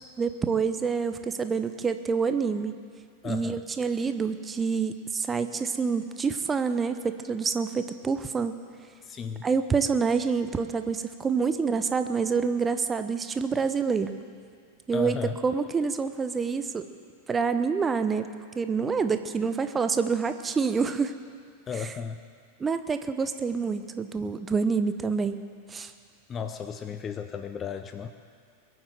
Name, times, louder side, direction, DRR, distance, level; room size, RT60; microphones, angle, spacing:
voice 1, 0.2-2.8 3.2-8.6 9.4-14.2 14.9-15.2 15.4-16.9 17.3-21.2 21.8-21.9 22.6-25.4 25.7-25.9, right 5 dB, 15° right, 10 dB, 0.7 m, -27 dB
voice 2, 3.2-3.6 9.0-9.5 14.9-15.4 21.7-22.2 26.3-28.1, left 6 dB, 25° left, 8 dB, 0.7 m, -34 dB
22.5 x 8.0 x 7.8 m, 2.1 s
figure-of-eight pair, 90°, 0 cm